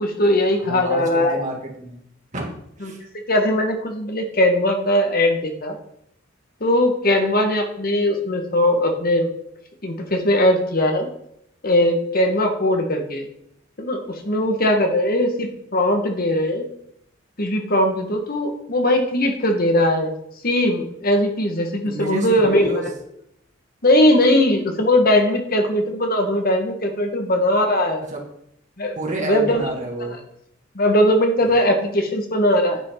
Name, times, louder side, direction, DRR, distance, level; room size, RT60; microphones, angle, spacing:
voice 1, 0.0-1.4 2.8-2.9 3.3-5.8 6.6-9.3 9.8-11.1 11.6-13.3 13.8-16.7 17.4-20.1 20.4-22.9 23.8-28.0 28.8-29.7 30.8-32.8, left 1 dB, 50° left, 4 dB, 1.7 m, -19 dB
voice 2, 0.6-2.0 2.3-3.0 21.8-22.8 28.1-28.2 29.0-30.2, right 2 dB, 35° right, 0 dB, 2.5 m, -30 dB
10.0 x 8.8 x 4.0 m, 0.74 s
head